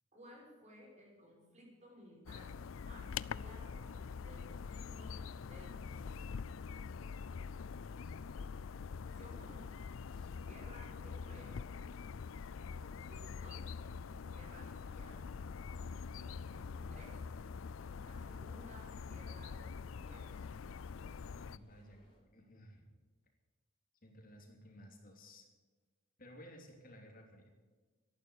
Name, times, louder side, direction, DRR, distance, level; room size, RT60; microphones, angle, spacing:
voice 1, 0.1-6.0 9.0-9.7 10.4-11.6 12.8-13.7 14.2-15.2 16.2-17.2 18.0-20.4, equal, 35° right, -2 dB, 5.8 m, -58 dB
sound 1, 2.3-21.6, left 5 dB, 80° left, 0.5 m, -45 dB
sound 2, 4.2-22.2, left 1 dB, 25° left, 4.3 m, -68 dB
voice 2, 21.3-22.0 22.3-22.9 24.0-25.5 26.2-27.5, equal, 45° left, 2 dB, 3.0 m, -56 dB
13.5 x 11.5 x 8.2 m, 1.3 s
head